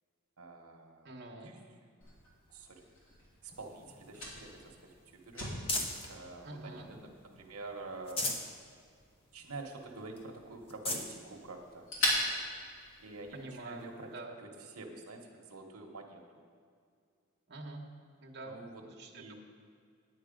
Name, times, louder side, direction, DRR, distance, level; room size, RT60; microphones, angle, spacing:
voice 1, 0.4-1.2 1.4-1.6 2.5-3.0 3.4-5.4 6.1-8.3 9.3-11.9 13.0-16.4 18.4-18.8 19.1-19.4, right 2 dB, 90° right, 1 dB, 1.1 m, -47 dB
voice 2, 1.0-1.5 6.4-6.9 13.3-14.4 17.5-17.8 18.2-19.4, right 2 dB, 50° right, -1 dB, 1.2 m, -46 dB
Fire, 2.0-13.5, left 1 dB, 65° left, 3.1 m, -41 dB
sound 1, 3.5-6.2 6.7-7.5 7.9-8.5 9.0-9.1 9.4-9.5 10.2-10.3 10.6-11.1 11.9-12.0 13.8-13.9, left 2 dB, 25° left, 0.9 m, -39 dB
9.5 x 9.3 x 5.2 m, 2.2 s
head